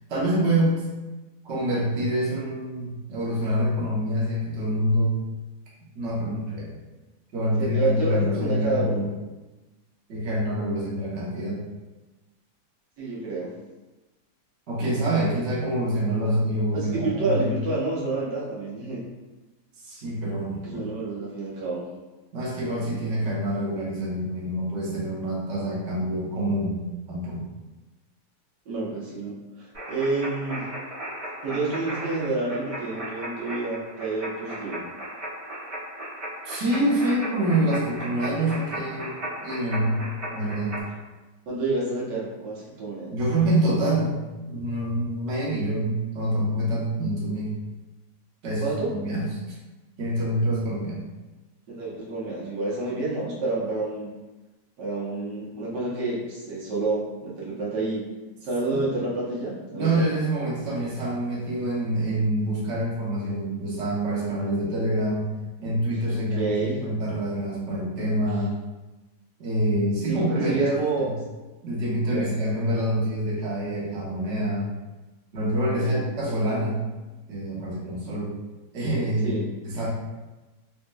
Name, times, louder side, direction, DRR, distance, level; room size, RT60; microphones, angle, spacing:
voice 1, 0.1-0.8 1.4-5.2 5.9-6.8 7.3-9.1 10.1-11.6 14.7-17.5 19.8-20.9 22.3-26.8 27.1-27.4 36.4-40.0 40.3-40.7 43.1-44.2 44.5-47.5 48.4-48.6 49.0-49.5 50.0-51.0 58.7-58.8 59.7-65.3 65.6-68.5 69.4-71.1 71.6-74.7 75.3-76.9 77.3-78.3 78.7-79.4 79.6-79.9, right 1 dB, 50° right, -7 dB, 1.1 m, -26 dB
voice 2, 7.6-9.1 13.0-13.6 16.7-19.0 20.6-21.8 28.7-30.7 31.4-34.8 41.5-43.2 48.6-48.9 51.7-54.1 54.8-58.0 58.4-60.0 66.1-66.8 70.0-71.1 72.0-72.4 75.7-76.0 79.2-79.5, right 3 dB, 80° right, -6 dB, 1.5 m, -29 dB
sound 1, 29.7-40.8, right 1 dB, 30° right, 0.6 m, -36 dB
4.1 x 2.5 x 2.2 m, 1.2 s
omnidirectional pair, 1.8 m